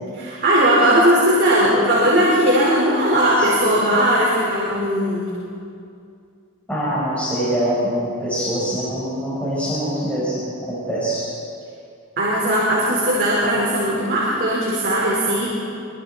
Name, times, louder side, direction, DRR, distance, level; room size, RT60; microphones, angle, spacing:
voice 1, 0.2-5.5 12.2-15.5, right 1 dB, 50° right, -7 dB, 4.9 m, -18 dB
voice 2, 6.7-11.3, equal, 5° left, -8 dB, 5.1 m, -24 dB
26.0 x 24.5 x 4.4 m, 2.4 s
head